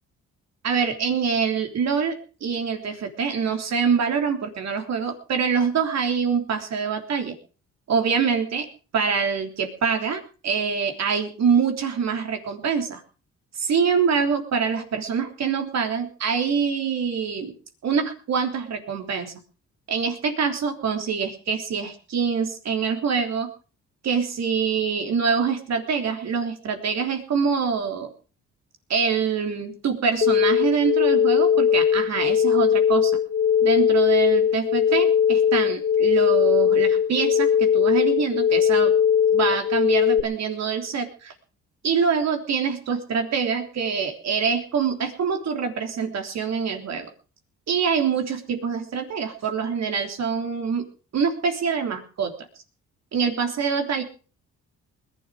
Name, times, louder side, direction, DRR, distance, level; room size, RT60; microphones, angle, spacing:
voice 1, 0.6-7.4 7.9-8.7 8.9-13.0 13.5-17.5 17.8-19.3 19.9-23.5 24.0-28.1 28.9-33.2 33.6-38.9 39.3-41.3 41.8-47.1 47.7-50.8 51.1-52.3 53.1-54.0, right 6 dB, 60° right, 5 dB, 3.5 m, -25 dB
sound 1, 30.2-40.2, left 8 dB, 40° left, 1.4 m, -19 dB
20.5 x 11.5 x 5.0 m, 0.38 s
cardioid pair, 90°, 30 cm